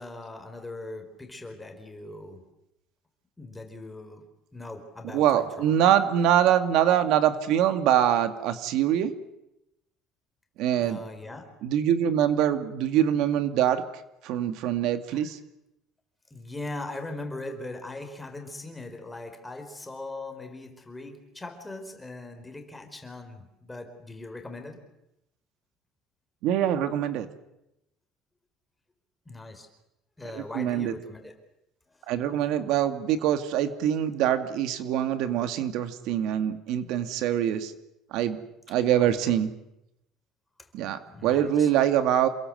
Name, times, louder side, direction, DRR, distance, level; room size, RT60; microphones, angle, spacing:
voice 1, 0.0-2.4 3.4-4.2 4.5-5.7 10.8-11.5 15.1-15.3 16.3-24.8 29.2-29.7 30.2-31.3 38.9-39.3 41.1-41.7, left 2 dB, 10° left, 6 dB, 4.8 m, -40 dB
voice 2, 5.0-9.1 10.6-11.0 11.6-13.8 14.2-15.4 26.4-27.3 30.3-30.9 32.1-37.7 38.1-38.4 38.7-39.5 40.7-42.3, right 10 dB, 75° right, 9 dB, 2.1 m, -24 dB
28.0 x 22.0 x 7.9 m, 0.87 s
cardioid pair, 135°, 0 cm